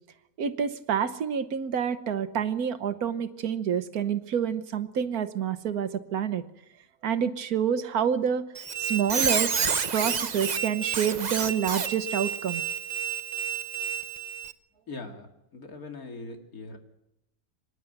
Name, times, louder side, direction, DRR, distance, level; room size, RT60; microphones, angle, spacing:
voice 1, 0.4-6.4 7.0-8.4 8.8-12.6, right 8 dB, 80° right, 11 dB, 1.5 m, -28 dB
Squeak, 8.5-14.5, right 7 dB, 40° right, 0.7 m, -29 dB
voice 2, 14.9-15.3 15.5-16.8, left 3 dB, 70° left, 4 dB, 2.8 m, -40 dB
25.5 x 11.0 x 9.3 m, 0.89 s
omnidirectional pair, 1.6 m